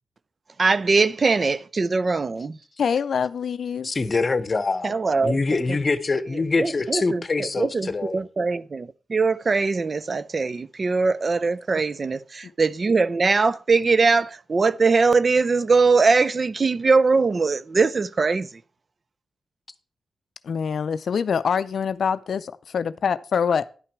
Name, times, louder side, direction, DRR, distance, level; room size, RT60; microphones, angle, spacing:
voice 1, 0.6-2.6 4.8-5.4 6.6-18.5, right 4 dB, 50° right, 0.4 m, -21 dB
voice 2, 2.8-3.9 20.4-22.4 22.7-23.6, left 6 dB, 70° left, 0.4 m, -24 dB
voice 3, 3.8-4.9 5.2-8.2, left 3 dB, 40° left, 0.8 m, -24 dB
10.5 x 5.8 x 4.6 m
cardioid pair, 55°, 0 cm